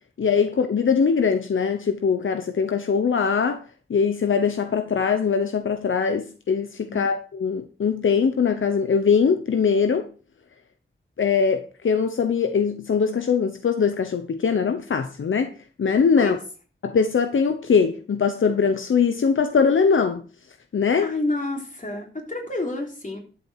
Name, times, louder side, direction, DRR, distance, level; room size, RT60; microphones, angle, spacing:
voice 1, 0.2-3.6 3.9-10.1 11.2-15.5 15.8-16.4 16.8-20.2 20.7-21.1, left 6 dB, 80° left, 0.9 m, -21 dB
voice 2, 21.0-23.2, left 2 dB, 40° left, 3.5 m, -29 dB
12.0 x 7.3 x 4.5 m
wide cardioid pair, 70°, 20 cm